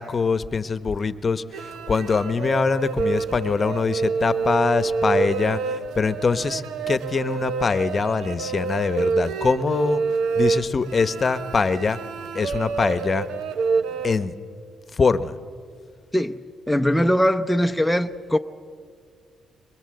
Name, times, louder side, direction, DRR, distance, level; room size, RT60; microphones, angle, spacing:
voice 1, 0.0-10.0 10.3-12.0 12.3-13.2 14.0-14.3 14.9-15.3, left 4 dB, 35° left, 0.9 m, -23 dB
sound 1, 1.5-14.2, right 5 dB, 85° right, 1.1 m, -27 dB
voice 2, 16.7-18.4, equal, 5° left, 0.6 m, -21 dB
24.5 x 23.0 x 7.8 m
cardioid pair, 90°, 0 cm